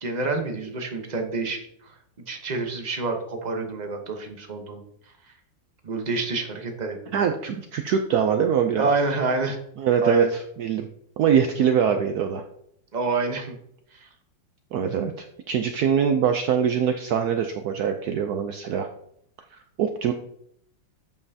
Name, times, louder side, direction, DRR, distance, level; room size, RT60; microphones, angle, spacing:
voice 1, 0.0-1.9 2.3-4.8 5.8-7.2 8.8-9.6 10.0-10.3 12.9-13.6 13.9-14.1, right 3 dB, 35° right, 3 dB, 0.8 m, -28 dB
voice 2, 7.1-8.9 9.8-10.9 11.2-12.4 14.7-18.9 19.5-20.1, right 7 dB, 70° right, 6 dB, 0.9 m, -23 dB
9.1 x 5.4 x 2.8 m, 0.69 s
omnidirectional pair, 2.1 m